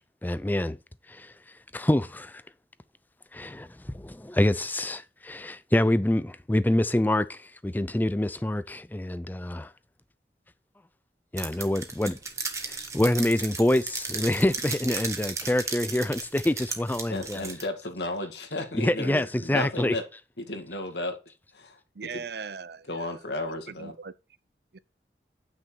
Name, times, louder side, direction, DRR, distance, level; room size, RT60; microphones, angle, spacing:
voice 1, 0.2-0.8 1.1-1.3 1.7-2.4 3.3-9.7 11.3-12.2 12.6-17.5 18.7-20.0, left 1 dB, 10° left, 0.4 m, -26 dB
sound 1, 11.4-17.6, right 4 dB, 15° right, 1.3 m, -35 dB
voice 2, 17.1-20.0 20.4-21.2 21.5-21.8 22.1-22.2 22.9-23.9, left 2 dB, 75° left, 2.0 m, -33 dB
voice 3, 21.9-23.1 23.7-24.1 24.7-24.8, right 5 dB, 65° right, 0.6 m, -39 dB
9.9 x 6.2 x 4.6 m
head